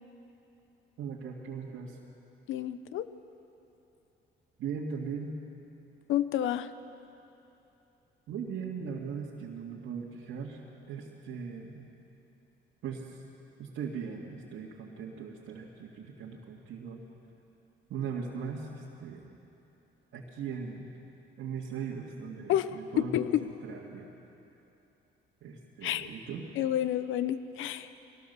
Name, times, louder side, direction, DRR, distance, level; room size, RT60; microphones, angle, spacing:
voice 1, 1.0-2.0 4.6-5.4 8.3-10.6 10.9-11.9 12.8-13.2 13.6-17.0 17.9-19.3 20.1-20.9 21.4-23.3 23.6-24.1 25.4-26.5, right 6 dB, 80° right, -4 dB, 2.0 m, -39 dB
voice 2, 2.5-3.1 6.1-6.7 22.5-23.5 25.8-26.1 26.6-27.9, left 11 dB, 85° left, 13 dB, 0.8 m, -29 dB
22.0 x 18.0 x 6.8 m, 2.9 s
cardioid pair, 90°, 20 cm